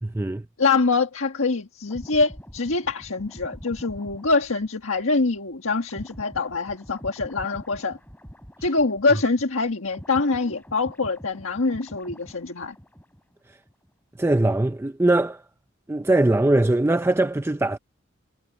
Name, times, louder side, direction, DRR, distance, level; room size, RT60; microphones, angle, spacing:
voice 1, 0.0-0.4 14.2-15.4 15.9-17.8, right 2 dB, 10° right, 0.4 m, -21 dB
voice 2, 0.6-8.0 8.6-12.7, left 3 dB, 75° left, 1.6 m, -24 dB
sound 1, 1.9-9.4 9.6-13.4 13.6-13.9, equal, 10° left, 7.1 m, -45 dB
head